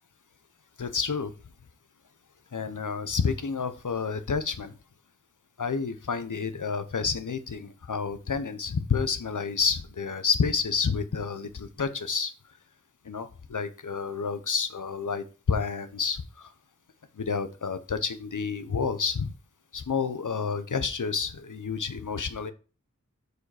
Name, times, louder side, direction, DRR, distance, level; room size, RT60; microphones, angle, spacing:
voice 1, 0.8-1.3 2.5-4.7 5.6-12.3 13.0-16.5 17.2-19.3 19.7-22.5, left 5 dB, 85° left, 11 dB, 0.8 m, -29 dB
6.4 x 5.0 x 4.8 m, 0.34 s
wide cardioid pair, 50°, 30 cm